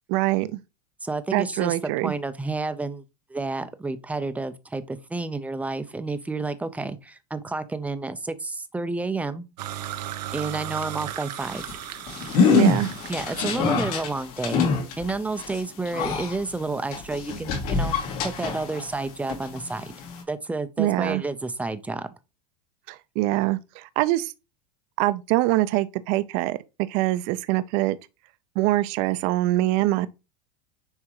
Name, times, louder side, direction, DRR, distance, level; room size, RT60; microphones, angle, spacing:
voice 1, 0.1-0.6 1.3-2.1 12.5-12.9 20.8-21.2 22.9-24.3 25.0-26.6 26.9-28.0 28.6-30.1, right 17 dB, 55° right, 0.7 m, -24 dB
voice 2, 1.0-3.0 3.3-9.5 10.3-11.6 13.1-14.7 15.0-19.9 20.3-22.1, right 3 dB, 5° right, 0.6 m, -30 dB
sound 1, 9.6-13.8, right 11 dB, 85° right, 0.9 m, -36 dB
sound 2, 11.4-19.0 19.3-20.2, left 5 dB, 70° left, 2.7 m, -25 dB
9.8 x 3.6 x 3.1 m
supercardioid pair, 135°, 20 cm